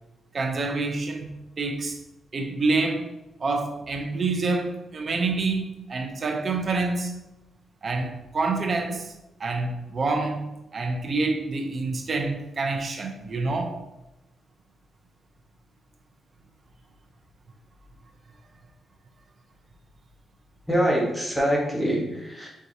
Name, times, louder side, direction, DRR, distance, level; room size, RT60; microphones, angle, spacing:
voice 1, 0.3-1.3 1.6-2.0 2.3-3.1 3.4-7.1 7.8-9.1 9.4-13.8, right 3 dB, 45° right, 0.7 m, -27 dB
voice 2, 20.7-22.5, equal, 5° left, 1.4 m, -24 dB
4.6 x 3.7 x 2.8 m
cardioid pair, 105°, 0 cm